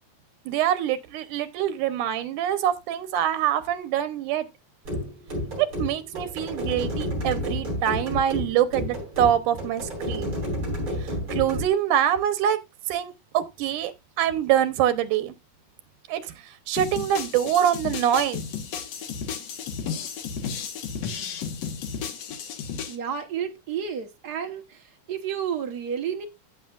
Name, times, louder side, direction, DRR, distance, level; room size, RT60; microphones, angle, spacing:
voice 1, 0.5-4.5 5.6-10.3 11.0-12.6 12.9-13.9 14.2-15.3 16.1-16.3 16.7-18.4, right 10 dB, 90° right, 2.4 m, -25 dB
sound 1, 4.8-11.7, equal, 40° right, 7.1 m, -30 dB
sound 2, 16.8-23.0, left 6 dB, 65° left, 2.3 m, -33 dB
voice 2, 22.9-26.3, right 8 dB, 60° right, 1.0 m, -31 dB
15.5 x 6.5 x 2.4 m
omnidirectional pair, 3.5 m